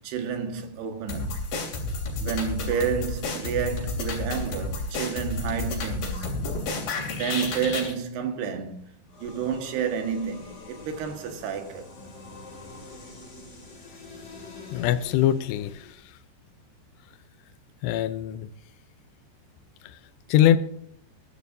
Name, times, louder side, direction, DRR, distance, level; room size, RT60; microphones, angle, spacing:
voice 1, 0.0-1.4 2.2-11.9, right 7 dB, 70° right, 3.6 m, -30 dB
sound 1, 1.1-7.9, left 2 dB, 60° left, 4.7 m, -31 dB
sound 2, 9.1-16.0, left 3 dB, 20° left, 2.0 m, -45 dB
voice 2, 14.7-15.9 17.8-18.5 20.3-20.6, left 11 dB, 80° left, 2.8 m, -22 dB
21.0 x 11.5 x 2.7 m
omnidirectional pair, 4.9 m